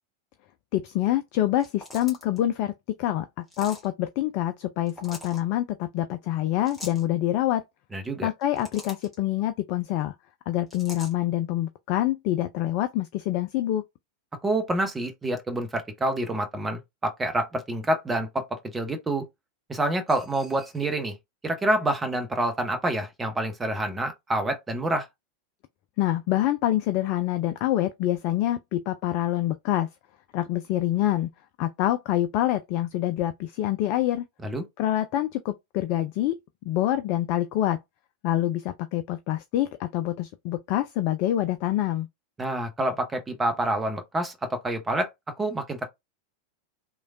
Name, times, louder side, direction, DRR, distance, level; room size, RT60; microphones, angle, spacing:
voice 1, 0.7-2.7 3.0-7.6 8.2-10.1 10.5-13.8 26.0-29.9 30.3-31.3 31.6-34.3 34.8-36.4 36.7-37.8 38.2-42.1, left 13 dB, 45° left, 0.3 m, -26 dB
sound 1, 1.6-2.4 3.5-3.9 4.9-5.4 6.7-7.0 8.3-9.2 10.7-11.1, left 1 dB, 10° left, 1.2 m, -42 dB
voice 2, 7.9-8.3 14.4-18.5 18.7-19.3 19.7-21.2 21.4-25.1 34.4-34.6 42.4-45.1 45.4-45.9, right 1 dB, 15° right, 0.8 m, -27 dB
3.1 x 2.2 x 2.5 m
figure-of-eight pair, 90°, 0 cm